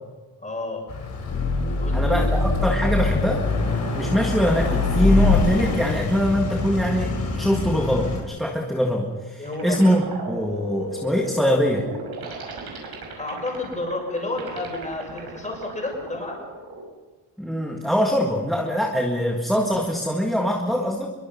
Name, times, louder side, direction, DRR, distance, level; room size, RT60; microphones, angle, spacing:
voice 1, 0.4-0.8 1.8-2.3 3.9-4.1 9.4-9.8 13.2-16.4, left 2 dB, 15° left, 1 dB, 6.5 m, -30 dB
Car passing by / Accelerating revving vroom, 0.9-8.2, left 3 dB, 35° left, 4.7 m, -23 dB
voice 2, 1.9-3.4 3.9-11.9 17.4-21.1, equal, ahead, 1 dB, 1.7 m, -23 dB
Warped Warblard, 9.3-16.8, right 1 dB, 55° right, 6.0 m, -36 dB
25.5 x 23.0 x 5.5 m, 1.2 s
cardioid pair, 175°, 44 cm